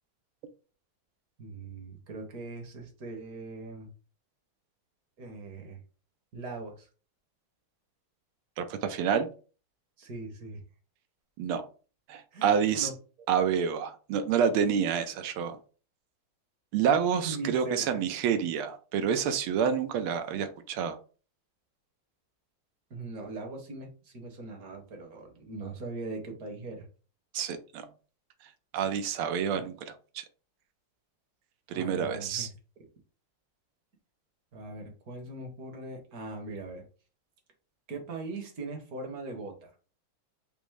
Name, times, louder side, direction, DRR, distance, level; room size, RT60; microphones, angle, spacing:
voice 1, 1.4-3.9 5.2-5.8 6.3-6.9 10.0-10.6 12.3-12.9 13.2-13.3 16.8-16.9 17.2-18.0 22.9-26.9 29.5-29.6 31.7-32.5 34.5-36.8 37.9-39.7, right 3 dB, 50° right, 3 dB, 1.4 m, -40 dB
voice 2, 8.6-9.3 11.4-11.6 12.1-12.9 13.3-15.6 16.7-21.0 27.3-27.8 28.7-29.9 31.7-32.5, right 7 dB, 85° right, 8 dB, 1.5 m, -28 dB
5.5 x 2.0 x 4.6 m, 0.37 s
omnidirectional pair, 2.3 m